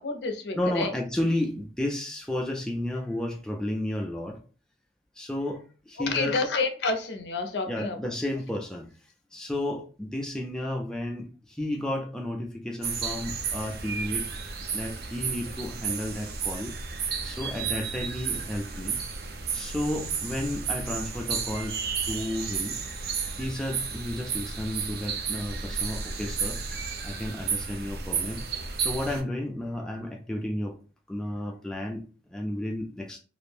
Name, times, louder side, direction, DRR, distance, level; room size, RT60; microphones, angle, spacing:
voice 1, 0.0-0.9 6.1-8.1, left 3 dB, 80° left, 5 dB, 0.6 m, -29 dB
voice 2, 0.5-4.4 5.2-6.4 7.7-8.9 9.3-14.3 14.7-16.8 17.2-19.0 19.5-21.8 22.1-22.8 23.4-26.6 27.0-28.4 28.8-30.8 31.1-32.0 32.3-33.2, left 1 dB, 5° left, 1 dB, 0.3 m, -32 dB
sound 1, 12.8-29.2, right 5 dB, 60° right, 0.4 m, -32 dB
2.5 x 2.0 x 3.2 m, 0.37 s
head